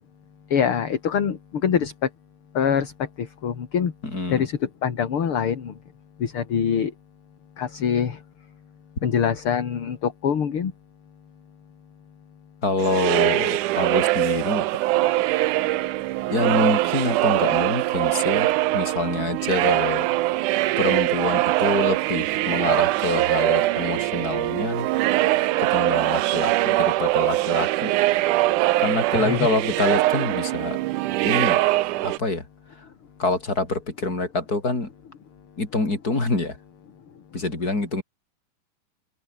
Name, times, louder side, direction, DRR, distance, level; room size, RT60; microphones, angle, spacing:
voice 1, 0.5-1.9 2.5-2.9 3.2-3.9 4.3-5.7 6.2-6.9 7.6-8.2 9.0-10.7 29.2-29.4, left 7 dB, 40° left, 2.5 m, -24 dB
voice 2, 4.0-4.4 12.6-14.7 16.3-20.1 20.8-24.9 25.6-27.9 28.8-30.8 31.2-31.6 32.0-32.5 33.2-34.9 35.6-36.6 37.3-38.0, left 3 dB, 25° left, 5.6 m, -26 dB
sound 1, 12.8-32.2, right 17 dB, 75° right, 2.0 m, -22 dB
open air
omnidirectional pair, 4.2 m